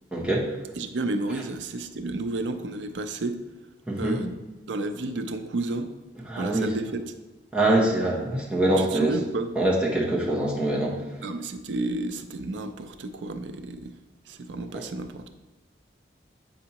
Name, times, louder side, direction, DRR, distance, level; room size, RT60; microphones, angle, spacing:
voice 1, 0.1-0.5 3.9-4.2 6.3-6.7 7.5-9.2 9.5-10.9 14.7-14.8, right 1 dB, 5° right, -5 dB, 1.3 m, -24 dB
voice 2, 0.8-3.4 4.0-4.4 4.7-5.9 6.4-7.1 8.8-9.5 11.2-14.0 14.3-15.3, right 2 dB, 85° right, 9 dB, 0.5 m, -31 dB
8.4 x 5.3 x 2.9 m, 1.1 s
head